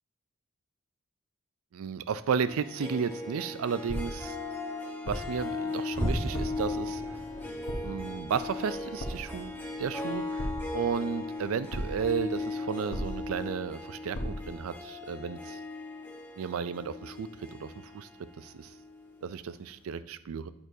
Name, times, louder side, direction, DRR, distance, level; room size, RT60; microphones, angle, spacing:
voice 1, 1.7-4.4 5.0-7.0 7.8-9.5 9.8-10.5 10.7-15.6 16.4-17.3 17.6-18.1 18.4-18.7 19.2-20.5, right 6 dB, 80° right, 15 dB, 0.4 m, -33 dB
Harp, 2.5-19.2, left 2 dB, 10° left, 0.9 m, -38 dB
sound 1, 3.9-4.3 5.1-5.5 6.3-6.7 7.7-8.1 9.0-9.4 10.4-10.9 11.7-12.2 12.9-13.4 14.1-14.6, equal, 80° left, 1.0 m, -36 dB
sound 2, 5.9-12.6 12.9-13.2 13.6-13.8 14.3-14.5, equal, 15° right, 1.1 m, -40 dB
8.7 x 6.1 x 2.7 m, 0.81 s
head